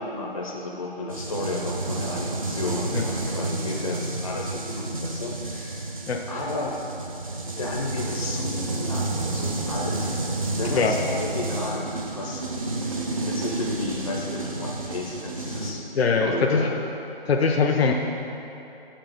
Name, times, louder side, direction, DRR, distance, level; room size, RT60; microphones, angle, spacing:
voice 1, 0.0-6.8 7.3-10.1 10.6-12.4 13.2-15.8 16.1-16.8 17.7-17.8, left 2 dB, 35° left, -1 dB, 0.5 m, -33 dB
sound 1, 1.1-15.7, right 2 dB, 35° right, 0.5 m, -30 dB
voice 2, 15.9-16.7 17.3-17.9, left 5 dB, 85° left, 3 dB, 0.6 m, -22 dB
6.9 x 5.8 x 3.4 m, 2.9 s
hypercardioid pair, 165°, 30 cm